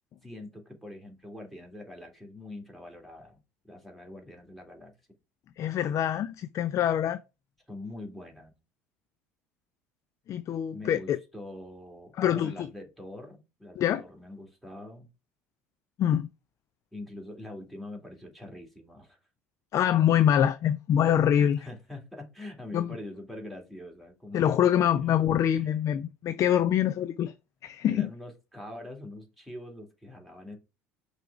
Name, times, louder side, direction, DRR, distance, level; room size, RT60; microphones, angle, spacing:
voice 1, 0.2-3.4 3.7-4.9 7.7-8.5 10.7-15.1 16.9-19.2 21.3-25.1 25.5-25.7 27.9-30.6, left 1 dB, ahead, 2.6 m, -44 dB
voice 2, 5.6-7.2 10.3-11.2 12.2-12.5 13.8-14.0 16.0-16.3 19.7-21.6 22.7-22.9 24.3-27.3 27.6-28.1, left 10 dB, 45° left, 0.4 m, -24 dB
5.8 x 3.5 x 5.9 m
hypercardioid pair, 70°, 7 cm